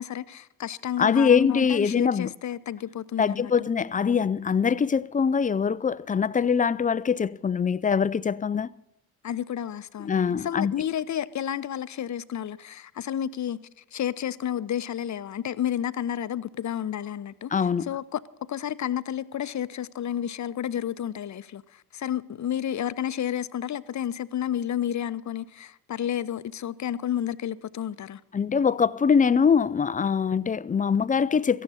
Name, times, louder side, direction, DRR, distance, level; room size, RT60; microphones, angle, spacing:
voice 1, 0.0-3.7 9.2-13.6 13.9-17.5 17.8-28.2, left 10 dB, 40° left, 0.8 m, -31 dB
voice 2, 1.0-2.3 3.2-8.7 10.0-10.7 17.5-17.9 28.3-31.6, left 6 dB, 20° left, 0.5 m, -23 dB
17.0 x 14.5 x 4.2 m
figure-of-eight pair, 40°, 47 cm